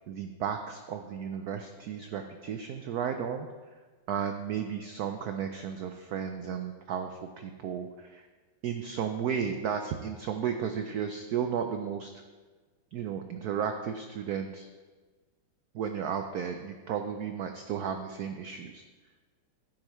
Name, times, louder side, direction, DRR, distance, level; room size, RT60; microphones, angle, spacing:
voice 1, 0.1-3.5 4.1-8.3 8.6-12.1 12.9-14.7 15.7-18.8, right 7 dB, 80° right, 6 dB, 0.8 m, -34 dB
11.5 x 9.7 x 3.1 m, 1.4 s
omnidirectional pair, 2.3 m